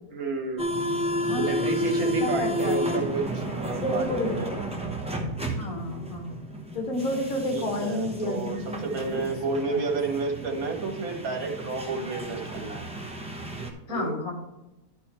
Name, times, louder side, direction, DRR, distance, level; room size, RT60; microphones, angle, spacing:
voice 1, 0.1-0.8 1.4-4.1 4.4-4.5 7.5-12.8 13.9-14.2, right 4 dB, 75° right, 2 dB, 1.9 m, -31 dB
sound 1, 0.6-13.7, equal, 5° right, 0.8 m, -32 dB
voice 2, 1.2-1.9 2.2-3.0 3.8-4.5 5.6-6.4 6.7-9.3 9.6-9.8 13.9-14.3, left 1 dB, 65° left, 1 dB, 2.0 m, -31 dB
12.0 x 4.5 x 4.3 m, 0.99 s
omnidirectional pair, 1.6 m